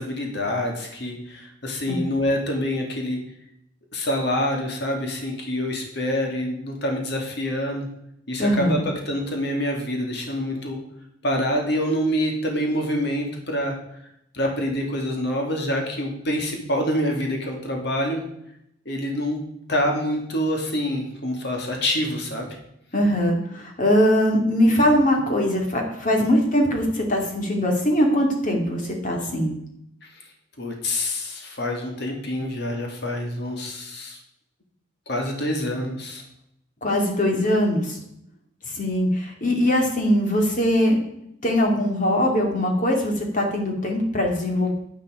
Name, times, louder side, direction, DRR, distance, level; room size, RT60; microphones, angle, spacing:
voice 1, 0.0-3.2 3.9-7.9 8.3-10.8 11.2-13.8 14.3-18.2 18.9-19.4 19.7-22.5 30.0-30.2 30.6-34.2 35.1-36.2, left 1 dB, 60° left, 2 dB, 2.3 m, -26 dB
voice 2, 8.4-8.8 22.9-29.5 36.8-38.0 38.7-41.0 41.4-44.7, equal, 40° left, 1 dB, 2.6 m, -21 dB
10.5 x 9.4 x 5.0 m, 0.76 s
head